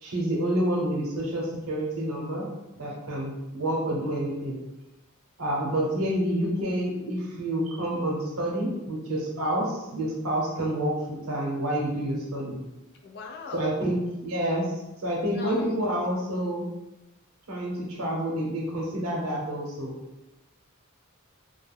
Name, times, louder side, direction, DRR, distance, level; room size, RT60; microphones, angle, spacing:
voice 1, 0.0-2.5 2.8-4.6 5.4-12.6 13.5-14.6 15.0-16.7 17.5-19.9, right 1 dB, 80° right, -2 dB, 0.8 m, -28 dB
voice 2, 2.9-3.3 13.0-13.7 15.3-15.7, left 4 dB, 50° left, 2 dB, 0.4 m, -39 dB
2.3 x 2.0 x 3.3 m, 0.98 s
head